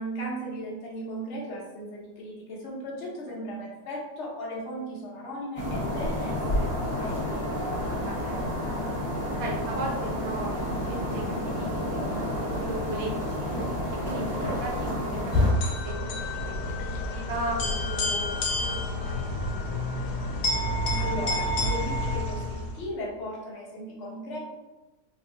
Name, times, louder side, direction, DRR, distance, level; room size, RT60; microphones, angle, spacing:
voice 1, 0.0-7.4 20.6-24.4, equal, 55° left, -5 dB, 1.1 m, -37 dB
sound 1, 5.6-15.5, left 1 dB, 10° left, 1.1 m, -29 dB
voice 2, 8.0-8.8 9.4-13.5 14.0-14.3 14.6-15.5 15.8-16.1 16.5-20.0, right 1 dB, 55° right, -1 dB, 0.9 m, -37 dB
sound 2, 15.3-22.8, left 1 dB, 90° left, 1.2 m, -29 dB
4.0 x 2.4 x 2.7 m, 1.1 s
omnidirectional pair, 1.7 m